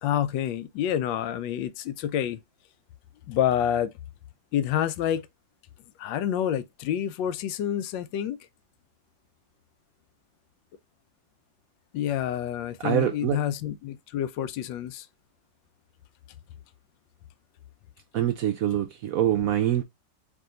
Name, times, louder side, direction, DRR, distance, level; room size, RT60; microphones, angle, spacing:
voice 1, 0.0-2.4 3.3-3.9 4.5-5.3 6.0-8.4 11.9-15.1, left 10 dB, 90° left, 1.3 m, -28 dB
voice 2, 12.8-13.4 18.1-19.8, right 11 dB, 70° right, 0.8 m, -25 dB
4.9 x 2.8 x 3.7 m
omnidirectional pair, 1.9 m